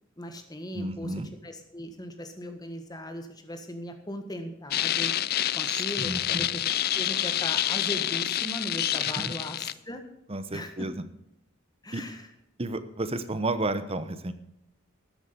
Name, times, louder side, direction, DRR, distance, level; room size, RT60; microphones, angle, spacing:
voice 1, 0.2-1.1 1.4-5.1 5.5-6.6 6.9-10.0 10.5-10.9 11.8-12.3, equal, 20° left, 6 dB, 1.6 m, -38 dB
voice 2, 0.7-1.3 6.0-6.5 9.0-9.3 10.3-10.9 11.9-12.0 12.6-14.3, right 2 dB, 30° right, 11 dB, 0.9 m, -32 dB
sound 1, 4.7-9.7, left 12 dB, 50° left, 0.4 m, -28 dB
13.5 x 8.1 x 6.8 m, 0.81 s
head